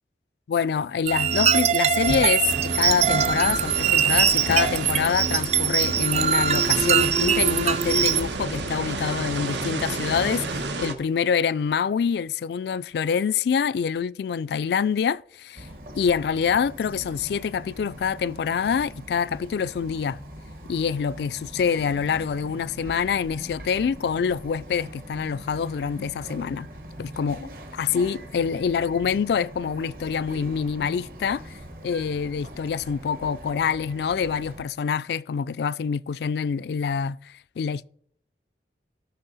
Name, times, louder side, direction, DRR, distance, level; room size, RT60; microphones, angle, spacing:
voice 1, 0.5-15.7 15.9-20.2 20.7-26.7 27.0-31.5 31.8-37.9, left 6 dB, 70° left, 0.3 m, -26 dB
sound 1, 1.1-8.2, right 8 dB, 35° right, 0.5 m, -22 dB
sound 2, 2.0-10.9, right 3 dB, 90° right, 1.3 m, -31 dB
Bird vocalization bird call bird song, 15.6-34.6, equal, 50° right, 1.4 m, -42 dB
16.5 x 6.2 x 4.1 m
head